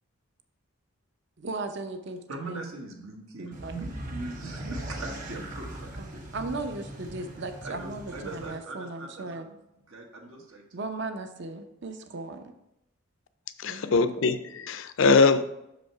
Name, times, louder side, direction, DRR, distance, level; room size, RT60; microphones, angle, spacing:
voice 1, 1.4-2.2 2.5-2.7 3.4-3.7 6.0-9.5 10.7-12.5 13.7-14.0, right 3 dB, 55° right, 0.6 m, -37 dB
voice 2, 2.3-6.3 7.6-9.6 9.9-10.8, right 2 dB, 80° right, 1.4 m, -41 dB
sound 1, 3.5-8.6, right 1 dB, 35° right, 1.3 m, -40 dB
voice 3, 13.6-15.4, left 4 dB, 60° left, 0.4 m, -22 dB
6.3 x 5.1 x 4.6 m
head